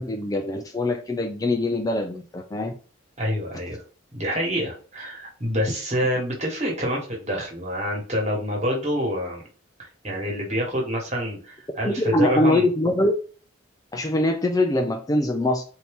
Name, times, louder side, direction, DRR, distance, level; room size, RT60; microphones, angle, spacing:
voice 1, 0.0-2.7 11.8-13.1 13.9-15.6, left 1 dB, 20° left, 4 dB, 0.3 m, -23 dB
voice 2, 3.2-3.8 4.1-9.4 10.0-12.7, equal, 35° right, -1 dB, 1.4 m, -27 dB
4.3 x 2.7 x 3.5 m, 0.39 s
head